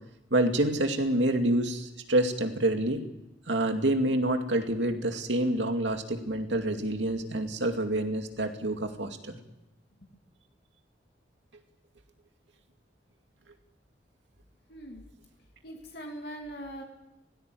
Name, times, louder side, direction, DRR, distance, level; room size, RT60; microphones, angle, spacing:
voice 1, 0.3-3.0 3.5-9.4, right 1 dB, 80° right, 5 dB, 2.5 m, -27 dB
voice 2, 14.7-15.1 15.6-16.8, right 1 dB, 60° left, 1 dB, 2.8 m, -41 dB
19.0 x 16.0 x 9.4 m, 0.92 s
head